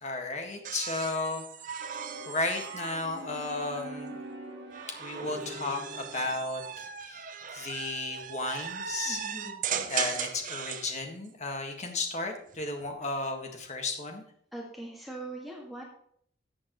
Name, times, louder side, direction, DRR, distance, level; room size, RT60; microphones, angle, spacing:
voice 1, 0.0-2.0 2.3-4.2 5.0-9.2 9.8-14.2, left 3 dB, 40° left, 3 dB, 1.7 m, -34 dB
sound 1, 0.6-3.9 4.7-10.9 12.4-12.9, right 8 dB, 45° right, 0.7 m, -38 dB
sound 2, 1.8-6.6, right 1 dB, 75° right, 2.2 m, -43 dB
voice 2, 9.1-9.6 14.5-15.8, right 2 dB, ahead, -2 dB, 1.9 m, -41 dB
14.0 x 7.7 x 3.1 m, 0.65 s
head